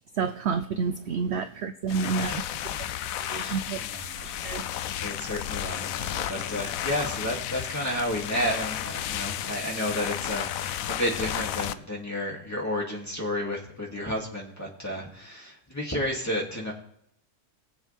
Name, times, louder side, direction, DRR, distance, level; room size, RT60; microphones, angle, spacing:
voice 1, 0.2-2.3 3.3-3.8 4.2-4.6, right 5 dB, 65° right, 10 dB, 0.7 m, -29 dB
sound 1, 1.8-11.7, left 11 dB, 70° left, 0.9 m, -33 dB
voice 2, 1.9-4.5 5.0-16.7, equal, 10° left, -2 dB, 2.5 m, -32 dB
21.0 x 7.2 x 3.5 m, 0.71 s
omnidirectional pair, 1.6 m